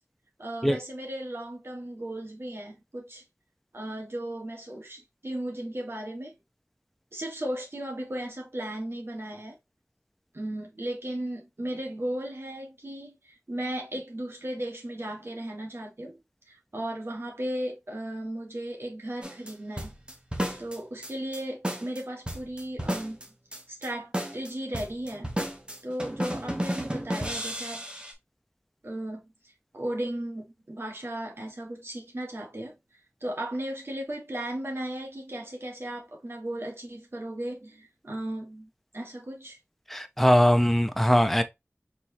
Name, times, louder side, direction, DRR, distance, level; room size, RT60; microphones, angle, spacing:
voice 1, 0.4-3.2 3.7-6.3 7.1-9.6 10.3-16.2 16.5-19.9 20.6-23.2 23.7-25.3 25.8-27.9 28.8-29.3 29.7-32.7 33.2-38.7 38.9-39.6, right 1 dB, 60° right, 1.7 m, -36 dB
sound 1, 19.2-19.5 19.8-20.8 21.0-21.4 21.6-22.0 22.3-23.3 23.5-23.9 24.1-28.1, equal, 20° right, 1.3 m, -32 dB
voice 2, 39.9-41.4, equal, 5° left, 0.7 m, -21 dB
4.4 x 3.4 x 3.1 m
wide cardioid pair, 50°, 5 cm